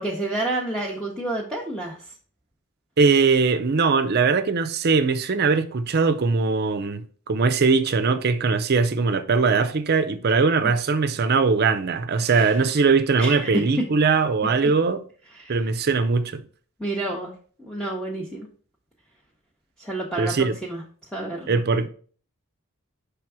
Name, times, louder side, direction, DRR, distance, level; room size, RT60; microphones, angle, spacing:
voice 1, 0.0-2.1 10.6-10.7 12.2-12.7 13.2-13.6 15.3-15.6 16.8-17.3 17.6-18.5 19.8-20.8 21.1-21.6, right 2 dB, 5° left, 0.8 m, -30 dB
voice 2, 3.0-15.0 15.5-16.4 20.2-20.6 21.5-21.9, right 4 dB, 45° right, 0.5 m, -21 dB
5.9 x 3.4 x 4.7 m
head